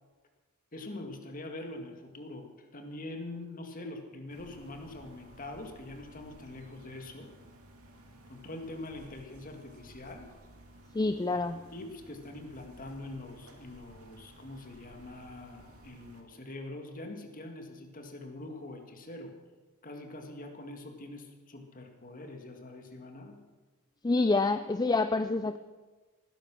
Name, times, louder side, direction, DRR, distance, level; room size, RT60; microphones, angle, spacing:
voice 1, 0.7-7.3 8.3-10.3 11.7-19.3 19.8-23.4, left 2 dB, 40° left, 4 dB, 2.1 m, -44 dB
sound 1, 4.3-16.2, right 1 dB, 75° right, 2.3 m, -55 dB
voice 2, 10.9-11.6 24.0-25.6, left 3 dB, 20° left, 10 dB, 0.4 m, -27 dB
18.5 x 10.5 x 6.3 m, 1.3 s
head